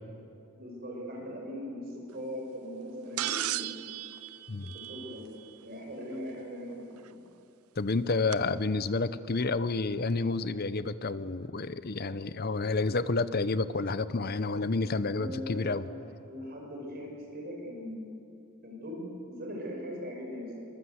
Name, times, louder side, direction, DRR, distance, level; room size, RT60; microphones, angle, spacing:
voice 1, 0.5-3.8 4.7-5.3 5.6-7.2 15.1-15.9 16.2-18.2 18.6-20.7, equal, 45° right, 0 dB, 6.0 m, -40 dB
sound 1, 3.2-5.5 7.1-7.2 8.3-8.4, right 13 dB, 75° right, 0.6 m, -35 dB
voice 2, 7.8-15.9, left 3 dB, 45° left, 14 dB, 0.7 m, -30 dB
23.0 x 22.5 x 8.0 m, 2.8 s
head